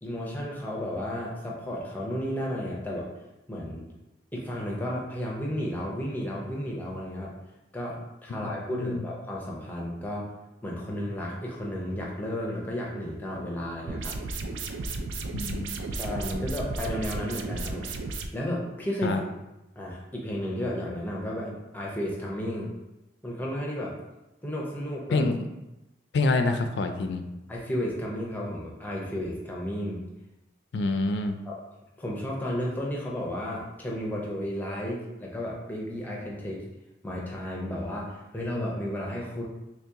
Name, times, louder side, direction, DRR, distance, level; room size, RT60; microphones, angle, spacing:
voice 1, 0.0-3.1 3.5-3.9 4.3-7.3 7.7-10.3 10.6-14.2 15.9-17.9 18.3-19.2 19.8-22.7 23.2-23.9 24.4-25.2 27.5-30.0 31.5-31.6 32.0-36.6 37.0-39.4, equal, 10° left, -3 dB, 0.5 m, -33 dB
voice 2, 8.4-9.0 15.3-15.8 19.0-19.2 25.1-25.4 26.1-27.2 30.7-31.4, left 3 dB, 65° left, 7 dB, 0.3 m, -27 dB
sound 1, 13.9-18.3, right 3 dB, 75° right, 0.4 m, -33 dB
3.1 x 2.8 x 3.5 m, 0.98 s
head